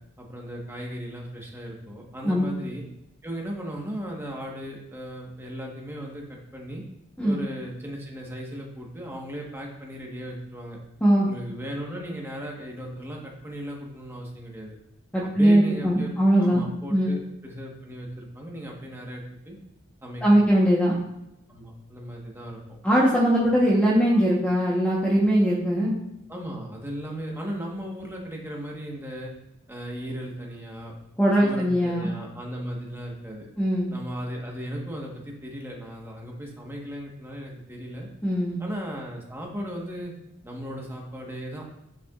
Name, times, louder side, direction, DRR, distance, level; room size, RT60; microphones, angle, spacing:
voice 1, 0.2-2.8 3.2-6.8 7.2-10.8 11.2-14.7 15.2-16.1 16.4-19.6 20.0-20.4 21.5-22.6 26.3-29.3 29.7-31.0 31.4-33.5 33.9-38.1 38.6-40.1 40.4-41.6, equal, 10° right, -1 dB, 1.3 m, -36 dB
voice 2, 15.1-17.2 20.2-20.9 22.8-25.9 31.2-32.1 33.6-33.9 38.2-38.6, equal, 5° left, -5 dB, 1.0 m, -21 dB
9.3 x 6.8 x 2.4 m, 0.84 s
head